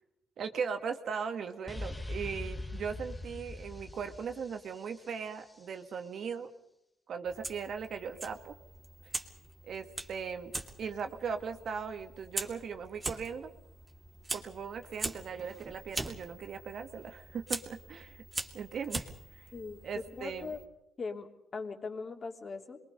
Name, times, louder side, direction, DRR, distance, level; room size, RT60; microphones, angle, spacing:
voice 1, 0.4-6.5 7.1-8.6 9.6-13.5 14.3-18.2 18.5-19.5 19.8-20.5, right 6 dB, 60° right, 7 dB, 1.8 m, -38 dB
sound 1, 1.7-5.4, left 2 dB, 15° left, 1.6 m, -42 dB
Fire, 7.2-20.6, right 2 dB, 25° right, 2.5 m, -42 dB
voice 2, 19.5-20.6 21.0-22.8, left 4 dB, 40° left, 4 dB, 3.0 m, -40 dB
27.5 x 22.0 x 5.4 m, 0.84 s
cardioid pair, 90°, 0 cm